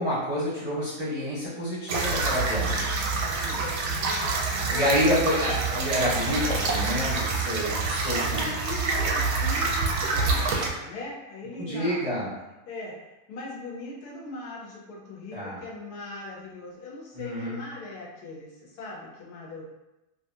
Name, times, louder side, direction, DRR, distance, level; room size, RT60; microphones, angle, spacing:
voice 1, 0.0-2.9 4.6-8.4 11.6-12.3 15.3-15.6 17.1-17.6, equal, 35° right, -11 dB, 0.6 m, -28 dB
sound 1, 1.9-10.7, right 3 dB, 85° right, 1.1 m, -27 dB
voice 2, 3.3-5.1 5.4-5.7 8.3-12.2 12.7-19.6, left 2 dB, 80° left, -3 dB, 1.2 m, -40 dB
2.8 x 2.4 x 2.6 m, 0.98 s
omnidirectional pair, 1.7 m